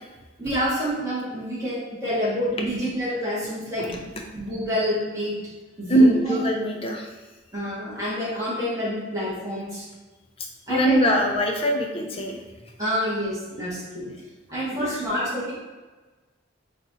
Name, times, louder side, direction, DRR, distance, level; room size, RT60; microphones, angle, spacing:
voice 1, 0.4-3.9 4.3-5.4 5.8-6.4 7.5-9.9 10.7-11.2 12.8-14.1 14.5-15.5, equal, 15° right, -9 dB, 1.4 m, -27 dB
voice 2, 5.9-7.1 10.4-12.4 14.7-15.0, right 1 dB, 30° left, 1 dB, 0.6 m, -22 dB
4.3 x 2.5 x 4.1 m, 1.2 s
head